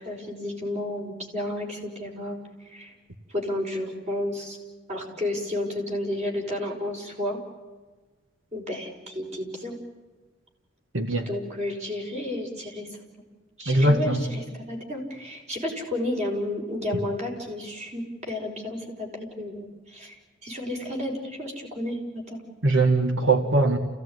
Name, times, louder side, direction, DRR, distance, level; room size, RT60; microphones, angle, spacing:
voice 1, 0.0-2.4 2.7-2.9 3.3-4.6 4.9-7.4 8.5-9.8 11.3-12.9 13.6-22.0 22.3-22.4, left 1 dB, 35° right, 1 dB, 5.3 m, -32 dB
voice 2, 10.9-11.3 13.7-14.2 22.6-23.8, right 2 dB, 85° right, 5 dB, 1.9 m, -21 dB
29.0 x 17.0 x 9.6 m, 1.3 s
head